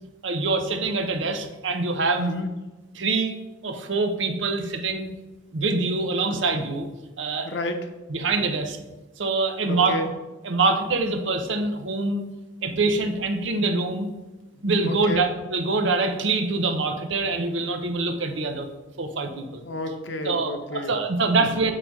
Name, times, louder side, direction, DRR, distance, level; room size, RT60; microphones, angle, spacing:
voice 1, 0.2-2.3 2.9-3.3 3.6-5.1 5.5-6.9 7.2-7.5 8.1-8.8 9.2-10.0 10.4-12.2 12.6-14.1 14.6-18.7 19.0-19.6 20.2-21.7, right 3 dB, 80° right, 6 dB, 0.8 m, -24 dB
voice 2, 2.2-2.5 7.4-7.9 9.7-10.1 14.8-15.3 19.6-20.9 21.3-21.6, left 1 dB, 70° left, 6 dB, 0.8 m, -31 dB
7.6 x 3.9 x 4.6 m, 1.1 s
head